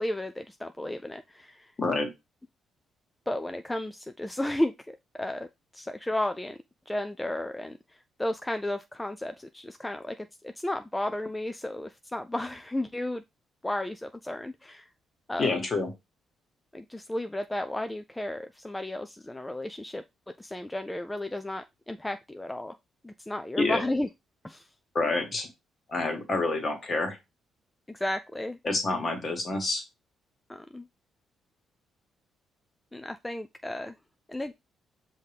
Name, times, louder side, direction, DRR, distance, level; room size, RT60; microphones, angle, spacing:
voice 1, 0.0-1.7 3.3-5.5 5.7-6.6 6.9-13.2 13.6-14.9 15.3-15.6 16.7-20.0 20.4-22.8 23.0-24.1 24.4-24.7 27.9-28.6 30.5-30.9 32.9-34.0 34.3-34.5, left 1 dB, 10° left, 0.3 m, -33 dB
voice 2, 1.8-2.1 15.4-15.9 23.6-23.8 24.9-25.5 25.9-27.2 28.6-29.8, left 3 dB, 40° left, 1.6 m, -27 dB
5.6 x 2.7 x 3.3 m
cardioid pair, 90°, 0 cm